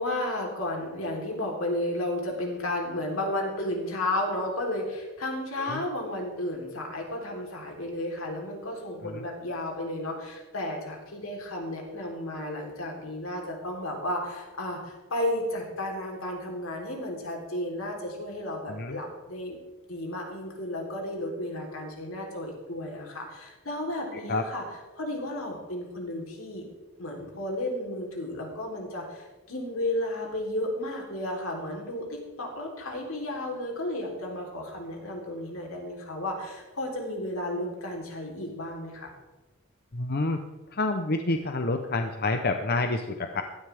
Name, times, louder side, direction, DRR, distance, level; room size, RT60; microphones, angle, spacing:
voice 1, 0.0-19.6 19.9-24.6 25.0-26.7 27.0-39.1, left 1 dB, 80° left, 0 dB, 3.7 m, -33 dB
voice 2, 24.1-24.4 39.9-40.4 40.7-43.4, left 2 dB, 50° left, 6 dB, 0.8 m, -28 dB
17.0 x 13.0 x 3.6 m, 1.2 s
head